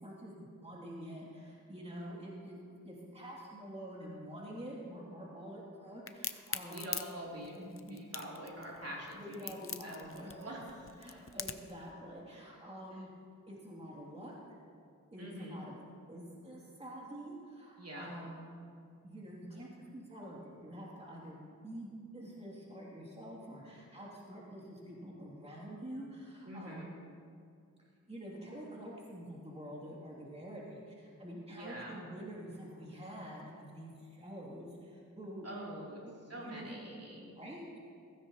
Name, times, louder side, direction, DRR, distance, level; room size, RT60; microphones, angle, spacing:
voice 1, 0.0-6.9 7.5-8.0 9.1-10.6 11.0-13.1 13.5-14.3 15.1-15.7 16.1-18.5 19.0-26.9 28.1-35.5 36.4-36.8 37.4-37.8, equal, 20° right, -5 dB, 2.8 m, -47 dB
Crack, 6.1-11.8, left 6 dB, 40° left, 0.7 m, -41 dB
voice 2, 6.6-9.5 9.8-10.6 15.2-15.6 17.8-18.1 26.4-26.9 31.5-32.0 35.4-36.0 36.3-37.4, right 1 dB, 45° right, -4 dB, 3.2 m, -45 dB
16.0 x 15.5 x 3.0 m, 2.3 s
cardioid pair, 75°, 33 cm